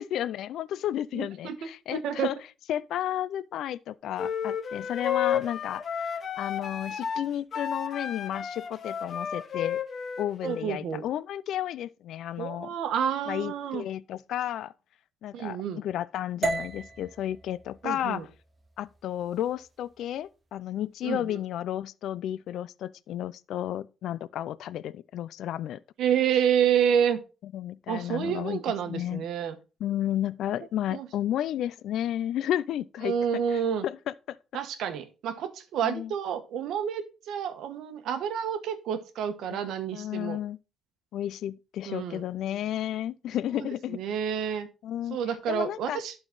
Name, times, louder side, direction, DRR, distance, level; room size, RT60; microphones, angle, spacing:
voice 1, 0.0-2.4 2.7-9.8 10.2-12.7 13.3-14.7 15.2-18.3 18.8-25.8 27.4-28.6 28.9-29.3 29.8-34.4 35.8-36.1 39.5-39.6 39.9-40.6 41.1-44.0 44.8-45.2 45.5-46.0, left 11 dB, 80° left, 0.3 m, -32 dB
voice 2, 1.1-1.6 1.9-2.3 10.4-11.0 12.4-13.8 15.3-15.8 17.8-18.2 21.0-21.2 26.0-27.2 27.9-29.5 30.9-31.1 33.0-33.8 34.5-40.4 41.9-42.2 43.6-44.7 45.1-46.1, right 8 dB, 80° right, 1.1 m, -29 dB
sound 1, 4.2-10.7, left 8 dB, 50° left, 0.9 m, -32 dB
sound 2, 16.4-20.6, right 2 dB, 30° right, 1.2 m, -37 dB
11.5 x 3.9 x 3.8 m
cardioid pair, 90°, 0 cm